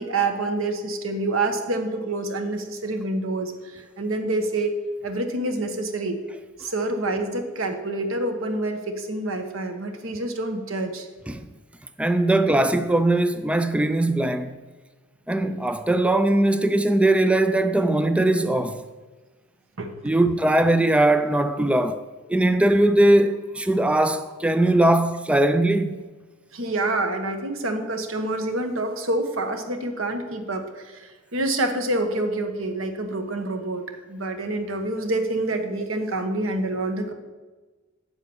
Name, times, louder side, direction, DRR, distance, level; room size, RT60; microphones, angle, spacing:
voice 1, 0.0-4.8 5.0-6.2 6.6-11.1 19.8-20.2 26.5-37.1, right 2 dB, 85° right, 1.3 m, -27 dB
voice 2, 12.0-14.6 15.3-18.8 20.0-22.0 22.3-26.0, right 1 dB, 5° right, 0.4 m, -20 dB
8.2 x 7.7 x 7.0 m
head